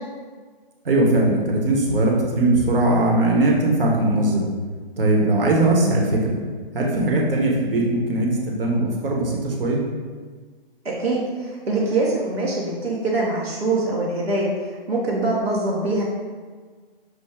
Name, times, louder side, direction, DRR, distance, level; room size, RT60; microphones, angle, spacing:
voice 1, 0.8-4.4 5.0-6.4 6.7-9.8, right 2 dB, 70° right, -1 dB, 1.1 m, -20 dB
voice 2, 10.8-14.5 14.9-16.0, right 2 dB, 90° right, -4 dB, 0.9 m, -23 dB
6.0 x 2.1 x 3.4 m, 1.5 s
hypercardioid pair, 140°, 30 cm